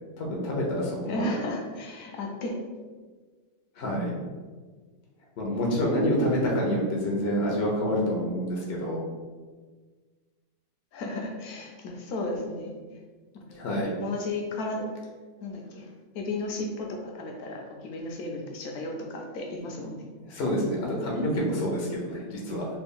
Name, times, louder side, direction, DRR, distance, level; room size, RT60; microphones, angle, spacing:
voice 1, 0.2-1.4 3.8-4.1 5.4-9.0 13.5-13.9 20.3-22.7, equal, 55° left, -3 dB, 0.7 m, -27 dB
voice 2, 1.1-2.6 3.8-3.9 6.2-6.4 7.2-7.3 10.9-12.7 13.5-13.7 14.0-14.9 15.4-20.0, left 2 dB, 80° left, 1 dB, 1.1 m, -34 dB
3.3 x 2.3 x 3.5 m, 1.4 s
omnidirectional pair, 1.6 m